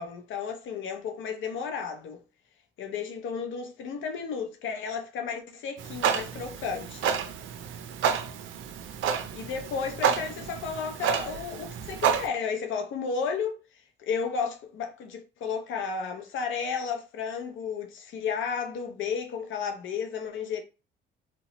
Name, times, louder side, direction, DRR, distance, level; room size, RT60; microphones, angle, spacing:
voice 1, 0.0-2.2 2.8-7.2 9.4-13.6 14.0-20.6, left 6 dB, 75° left, 0.6 m, -33 dB
Clock, 5.8-12.3, right 8 dB, 75° right, 0.4 m, -30 dB
2.9 x 2.1 x 2.7 m
cardioid pair, 90°, 20 cm